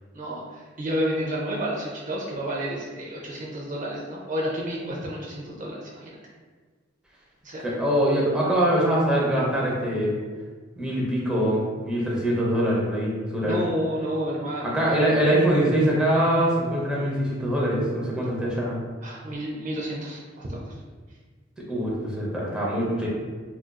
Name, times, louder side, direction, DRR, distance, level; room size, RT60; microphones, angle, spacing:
voice 1, 0.1-6.2 7.4-7.7 13.4-15.1 19.0-20.7, equal, 40° right, -3 dB, 0.5 m, -30 dB
voice 2, 7.6-10.2 10.8-13.6 14.6-18.8 21.7-23.1, right 1 dB, 5° right, -5 dB, 0.7 m, -23 dB
4.2 x 2.4 x 2.2 m, 1.5 s
head